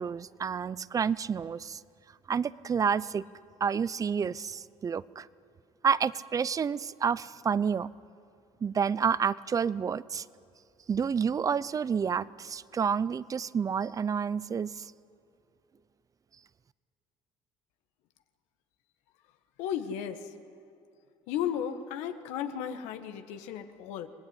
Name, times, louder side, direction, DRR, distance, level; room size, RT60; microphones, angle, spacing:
voice 1, 0.0-1.8 2.3-3.3 3.6-5.3 5.8-7.9 8.6-10.2 10.9-14.9, right 6 dB, 30° right, 19 dB, 0.6 m, -29 dB
voice 2, 19.6-20.3 21.3-24.1, left 9 dB, 90° left, 8 dB, 1.6 m, -34 dB
26.0 x 19.0 x 9.9 m, 2.5 s
cardioid pair, 110°, 11 cm